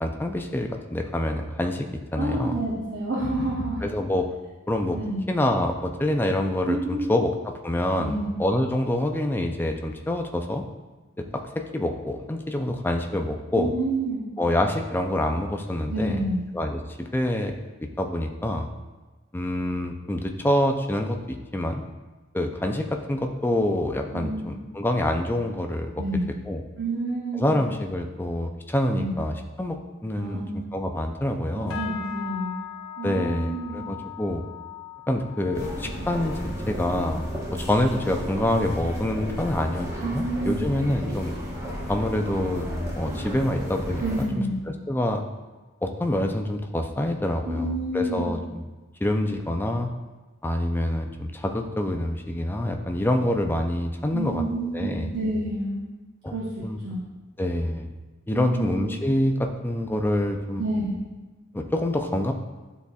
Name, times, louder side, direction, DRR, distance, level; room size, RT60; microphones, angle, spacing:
voice 1, 0.0-2.6 3.8-4.3 4.7-5.0 5.3-8.1 8.4-10.6 11.2-13.7 14.4-16.2 16.5-17.5 18.0-18.7 19.3-21.8 22.3-26.0 26.5-26.6 27.3-30.4 30.7-31.9 33.0-34.4 35.1-41.3 41.9-42.7 42.9-44.3 44.9-45.2 45.8-48.7 49.0-49.9 50.4-54.4 54.7-55.1 56.2-56.3 56.6-56.8 57.4-57.9 58.3-60.6 61.5-62.3, left 1 dB, 10° left, 4 dB, 0.4 m, -26 dB
voice 2, 2.1-3.8 4.9-5.2 6.6-7.1 8.0-8.3 13.5-14.3 15.9-16.4 24.1-24.5 26.0-26.3 26.8-27.6 28.9-29.1 30.2-30.5 31.6-32.6 33.0-33.9 40.0-40.6 44.0-44.6 47.4-48.3 54.1-55.8 56.3-57.0 58.3-58.7 60.6-60.9, right 2 dB, 55° right, -5 dB, 0.9 m, -29 dB
sound 1, 31.7-41.2 41.5-42.0 42.4-42.7 43.3-43.4, left 11 dB, 65° left, 0.8 m, -41 dB
sound 2, 35.5-44.3, equal, 15° right, 1.0 m, -33 dB
10.5 x 4.1 x 2.3 m, 1.2 s
head